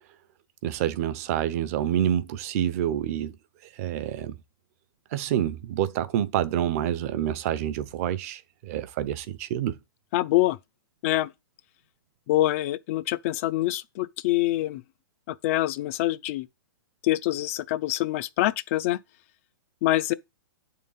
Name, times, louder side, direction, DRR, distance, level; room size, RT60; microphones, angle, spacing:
voice 1, 0.6-3.3 3.8-4.4 5.1-9.8, right 11 dB, 40° right, 0.8 m, -27 dB
voice 2, 10.1-10.6 11.0-11.3 12.3-14.8 15.3-16.5 17.0-19.0 19.8-20.1, left 16 dB, 40° left, 0.4 m, -25 dB
8.4 x 3.8 x 5.6 m
hypercardioid pair, 145°, 12 cm